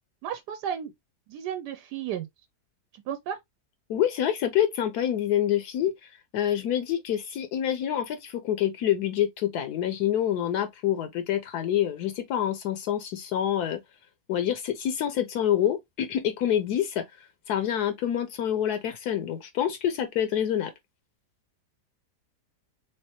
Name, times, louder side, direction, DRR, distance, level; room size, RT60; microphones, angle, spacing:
voice 1, 0.2-0.9 1.3-2.3 3.1-3.4, right 9 dB, 85° right, 1.2 m, -33 dB
voice 2, 3.9-13.8 14.3-20.7, left 10 dB, 75° left, 1.1 m, -27 dB
3.4 x 3.2 x 2.7 m
omnidirectional pair, 1.7 m